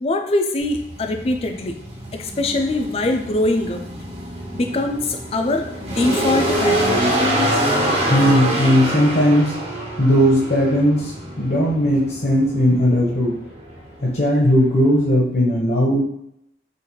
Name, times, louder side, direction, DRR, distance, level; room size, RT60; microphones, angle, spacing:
voice 1, 0.0-1.7 2.2-3.8 4.5-7.1, left 2 dB, 35° left, 5 dB, 0.4 m, -22 dB
sound 1, 0.6-15.1, right 1 dB, 35° right, 0.7 m, -25 dB
voice 2, 8.1-9.5 10.0-13.3 14.0-16.0, equal, 55° left, -4 dB, 0.8 m, -17 dB
3.8 x 2.5 x 3.0 m, 0.77 s
head